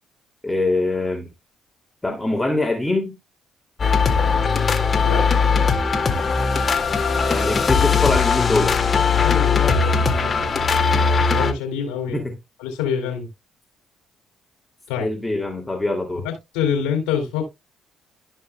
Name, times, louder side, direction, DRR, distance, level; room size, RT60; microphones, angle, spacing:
voice 1, 0.4-1.3 2.0-3.2 7.3-8.8 12.1-12.4 15.0-16.2, left 2 dB, 15° left, 2.6 m, -23 dB
sound 1, 3.8-11.5, left 5 dB, 40° left, 2.1 m, -19 dB
voice 2, 9.1-10.6 11.1-12.2 12.6-13.3 14.9-15.1 16.2-17.4, left 7 dB, 85° left, 3.2 m, -26 dB
14.5 x 5.5 x 2.3 m
hypercardioid pair, 55°, 0 cm